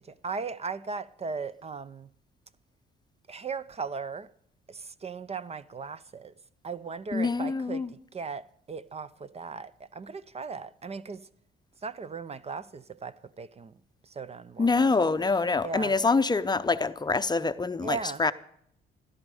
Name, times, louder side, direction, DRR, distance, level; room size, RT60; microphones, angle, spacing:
voice 1, 0.1-2.1 3.3-4.3 4.7-6.3 6.6-11.3 11.8-13.7 14.0-15.1 15.6-15.9 17.8-18.2, right 5 dB, 30° right, 0.5 m, -37 dB
voice 2, 7.1-7.9 14.6-18.3, left 4 dB, 20° left, 0.6 m, -25 dB
17.0 x 12.0 x 4.9 m
cardioid pair, 90°, 20 cm